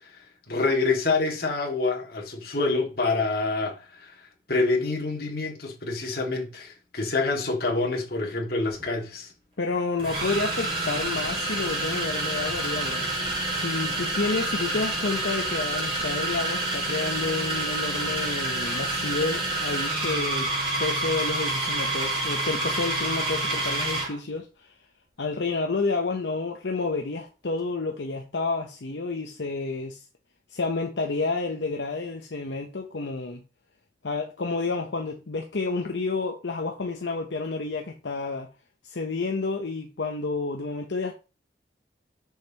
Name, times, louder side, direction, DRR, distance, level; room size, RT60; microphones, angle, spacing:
voice 1, 0.5-4.1 4.5-9.3, left 3 dB, 55° left, 2.0 m, -26 dB
sound 1, 8.8-8.9 10.0-24.2, right 2 dB, 30° right, 4.3 m, -28 dB
voice 2, 9.6-13.1 13.5-20.5 20.8-24.7 25.2-30.0 30.5-33.4 34.0-38.5 38.8-41.1, left 3 dB, 75° left, 0.8 m, -30 dB
6.5 x 6.4 x 2.9 m
head